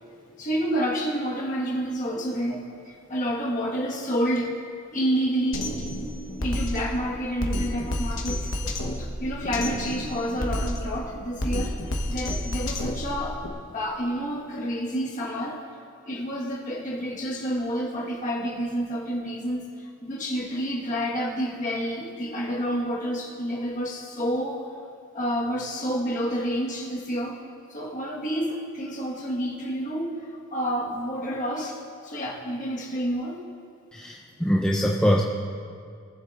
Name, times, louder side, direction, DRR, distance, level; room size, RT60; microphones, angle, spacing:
voice 1, 0.4-4.5 4.9-5.7 6.4-8.5 9.0-15.6 16.0-24.6 25.1-27.4 27.7-30.2 30.5-31.8 32.0-33.4, equal, 35° left, -3 dB, 1.4 m, -29 dB
Drum kit, 5.5-13.5, left 1 dB, 65° left, 1.1 m, -30 dB
voice 2, 33.9-35.2, equal, 5° left, -2 dB, 0.4 m, -23 dB
19.0 x 7.5 x 2.5 m, 2.3 s
head